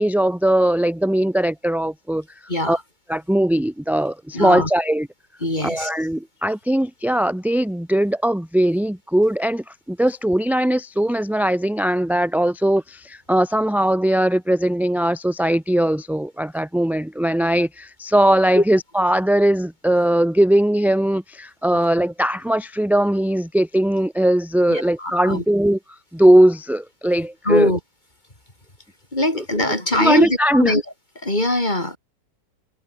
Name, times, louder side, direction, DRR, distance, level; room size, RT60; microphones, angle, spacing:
voice 1, 0.0-2.2 2.7-2.8 3.1-5.1 5.6-25.8 26.1-27.7 29.3-29.4 30.0-30.7, right 1 dB, ahead, 0.9 m, -19 dB
voice 2, 2.5-2.8 4.3-4.7 5.4-5.9 18.6-18.7 24.7-25.4 27.5-27.8 29.1-30.8 31.2-32.0, left 1 dB, 25° left, 5.4 m, -21 dB
omnidirectional pair, 1.9 m